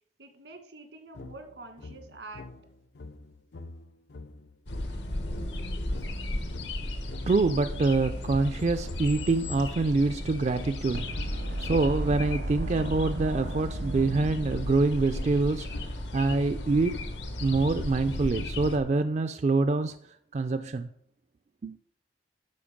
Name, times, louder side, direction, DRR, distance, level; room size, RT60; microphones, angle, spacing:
voice 1, 0.2-2.5, right 2 dB, 85° right, 1.8 m, -46 dB
sound 1, 1.1-9.9 10.6-19.2, left 2 dB, 70° left, 0.5 m, -45 dB
sound 2, 4.7-18.8, left 1 dB, 85° left, 1.4 m, -35 dB
voice 2, 7.3-17.0 17.4-19.9 20.3-20.9 21.6-21.8, right 3 dB, 40° right, 0.3 m, -26 dB
sound 3, 10.9-14.9, right 1 dB, 70° right, 0.9 m, -35 dB
12.0 x 5.1 x 5.1 m
head